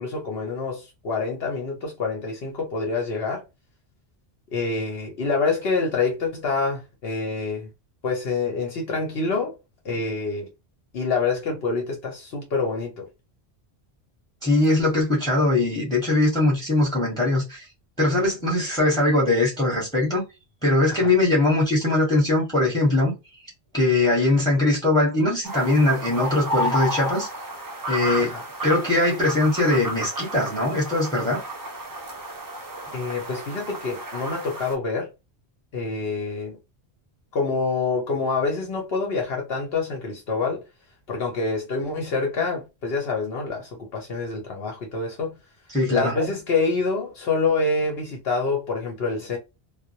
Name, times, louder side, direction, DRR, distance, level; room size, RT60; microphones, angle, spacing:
voice 1, 0.0-3.4 4.5-7.7 8.0-9.6 9.8-10.5 10.9-13.1 20.9-21.1 28.2-28.4 32.9-35.1 35.7-36.6 37.3-40.6 41.1-45.4 45.9-49.4, left 4 dB, 70° left, 0.9 m, -26 dB
voice 2, 14.4-17.6 18.0-20.2 20.6-23.1 23.7-27.3 27.9-28.3 28.6-31.4 45.7-46.1, left 2 dB, 5° left, 1.0 m, -21 dB
sound 1, 25.4-34.7, equal, 35° right, 0.3 m, -32 dB
2.3 x 2.0 x 2.7 m
omnidirectional pair, 1.1 m